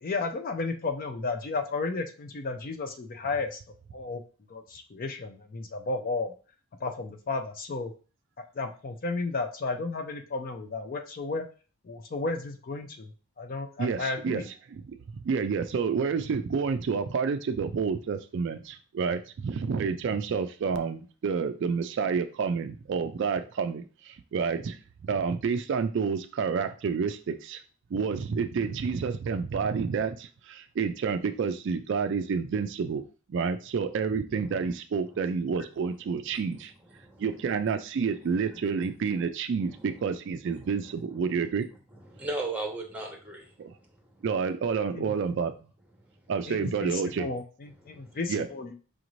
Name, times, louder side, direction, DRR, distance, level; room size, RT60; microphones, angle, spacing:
voice 1, 0.0-3.6 3.9-4.2 4.5-6.3 6.8-7.9 8.4-11.5 11.9-13.1 13.4-14.5 44.9-45.1 46.5-48.7, left 3 dB, 40° left, 6 dB, 0.4 m, -33 dB
voice 2, 13.8-14.4 14.7-15.0 15.2-27.6 27.9-33.0 33.3-36.7 37.2-41.7 43.6-43.7 44.2-45.5 46.3-47.3 48.3-48.5, right 5 dB, 55° right, 9 dB, 0.3 m, -29 dB
voice 3, 42.1-43.5 47.9-48.0, right 2 dB, 5° right, 0 dB, 0.9 m, -35 dB
4.9 x 2.6 x 3.0 m, 0.36 s
head